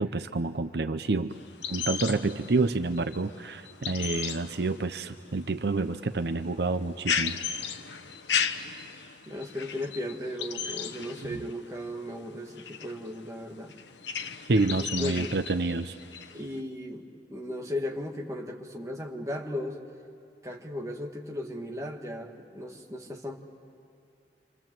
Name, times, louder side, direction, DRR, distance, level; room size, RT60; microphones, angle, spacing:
voice 1, 0.0-1.3 1.7-7.4 14.5-16.0, right 3 dB, 70° right, 9 dB, 0.7 m, -28 dB
sound 1, 1.3-16.6, left 7 dB, 85° left, 1.0 m, -36 dB
voice 2, 9.3-13.8 14.7-15.3 16.3-19.8 20.4-23.4, left 1 dB, 15° right, 0 dB, 1.9 m, -36 dB
28.0 x 26.0 x 7.6 m, 2.6 s
head